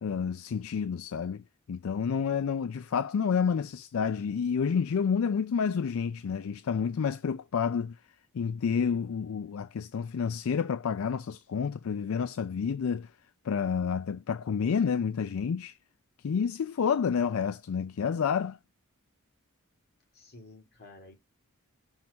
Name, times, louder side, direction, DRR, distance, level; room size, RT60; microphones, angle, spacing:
voice 1, 0.0-8.0 8.3-13.1 13.4-15.7 16.2-18.6, left 6 dB, 65° left, 0.4 m, -29 dB
voice 2, 20.1-21.1, left 2 dB, 45° left, 2.4 m, -51 dB
6.0 x 3.5 x 5.3 m
head